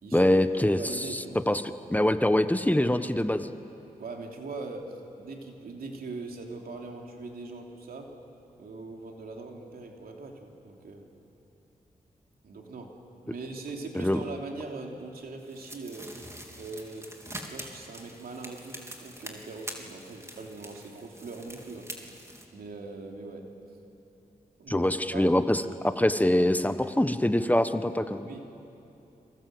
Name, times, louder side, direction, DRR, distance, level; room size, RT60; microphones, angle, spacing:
voice 1, 0.1-0.8 1.1-3.5 13.9-14.2 24.7-28.3, left 1 dB, 10° left, 10 dB, 1.2 m, -24 dB
voice 2, 0.7-1.4 4.0-8.1 8.6-11.1 12.4-12.9 13.2-16.1 16.6-17.1 17.5-21.9 22.5-23.8 24.6-25.2 28.2-28.4, right 3 dB, 80° right, 2 dB, 3.1 m, -41 dB
sound 1, 15.5-22.4, right 1 dB, 20° right, 3.7 m, -44 dB
30.0 x 24.5 x 8.0 m, 2.9 s
cardioid pair, 50°, 15 cm